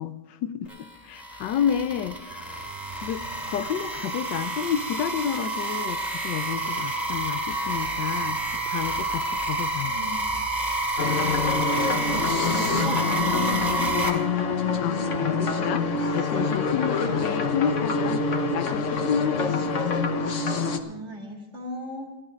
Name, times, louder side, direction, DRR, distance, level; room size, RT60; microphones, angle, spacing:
voice 1, 0.0-2.6 3.0-9.9 14.1-14.3 14.8-18.3 18.5-19.5, left 9 dB, 75° left, 12 dB, 1.3 m, -30 dB
sound 1, 0.7-14.1, right 2 dB, ahead, 2.1 m, -29 dB
voice 2, 9.8-10.3 11.8-14.3 20.8-22.1, equal, 40° right, 1 dB, 2.4 m, -37 dB
sound 2, 11.0-20.8, left 4 dB, 50° left, 1.2 m, -26 dB
16.5 x 11.5 x 5.1 m, 1.0 s
omnidirectional pair, 1.9 m